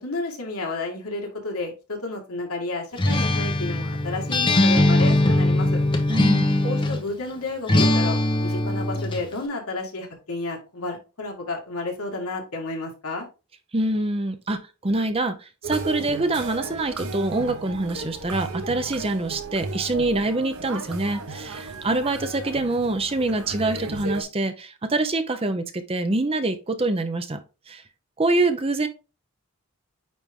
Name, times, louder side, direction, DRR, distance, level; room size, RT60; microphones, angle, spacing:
voice 1, 0.0-5.8 6.6-13.3, left 2 dB, 80° left, 1 dB, 2.0 m, -31 dB
Acoustic guitar, 3.0-7.1 7.7-9.3, left 1 dB, 20° left, 0.8 m, -21 dB
voice 2, 6.1-6.5 13.7-27.4 27.7-27.8 28.2-28.9, right 2 dB, 25° right, 9 dB, 0.6 m, -25 dB
sound 1, 15.6-24.2, right 3 dB, 75° right, 1.0 m, -35 dB
9.2 x 3.4 x 3.6 m, 0.31 s
head